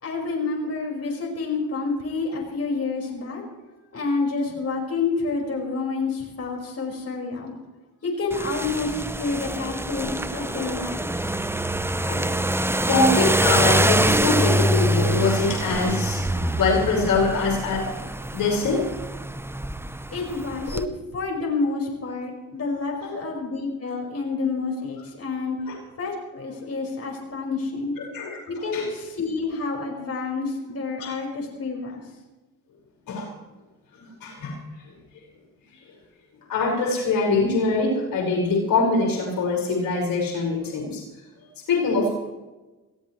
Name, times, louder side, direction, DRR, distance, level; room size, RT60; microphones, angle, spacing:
voice 1, 0.0-3.4 3.9-7.5 8.0-11.2 20.1-20.8 21.1-25.6 26.0-28.0 28.5-32.0, left 4 dB, 45° left, -1 dB, 5.2 m, -28 dB
sound 1, 8.3-20.9, right 1 dB, 5° right, 0.8 m, -25 dB
voice 2, 12.9-16.3 16.5-17.9 18.3-18.9 20.7-20.8 23.0-23.1 25.7-25.8 28.0-28.4 28.7-28.9 33.1-33.3 34.2-34.6 36.5-41.0 41.7-42.1, left 3 dB, 75° left, -2 dB, 5.2 m, -23 dB
22.0 x 17.0 x 3.2 m, 1.1 s
supercardioid pair, 65°, 34 cm